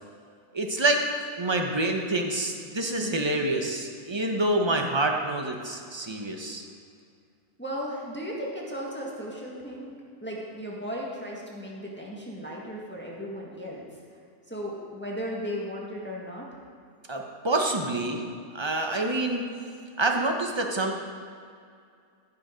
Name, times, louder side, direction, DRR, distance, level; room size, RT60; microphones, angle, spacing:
voice 1, 0.5-1.0 1.4-6.6 17.1-18.2 18.5-19.5 20.0-21.0, right 2 dB, 20° right, 2 dB, 0.9 m, -27 dB
voice 2, 7.6-9.9 10.2-13.9 14.5-16.5, equal, 10° left, -4 dB, 1.7 m, -36 dB
15.5 x 6.9 x 5.2 m, 2.3 s
omnidirectional pair, 1.5 m